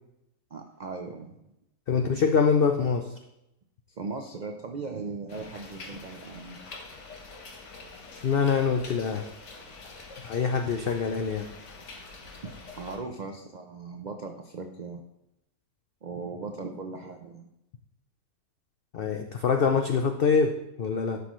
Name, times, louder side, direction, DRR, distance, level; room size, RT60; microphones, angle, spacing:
voice 1, 0.5-1.4 3.9-6.6 12.4-15.0 16.0-17.5, right 4 dB, 75° right, 4 dB, 0.4 m, -38 dB
voice 2, 1.9-3.1 8.2-9.2 10.2-11.5 18.9-21.2, left 5 dB, 80° left, 5 dB, 0.5 m, -24 dB
sound 1, 5.3-13.0, left 3 dB, 55° left, 1.4 m, -45 dB
11.5 x 5.9 x 3.1 m, 0.87 s
omnidirectional pair, 1.6 m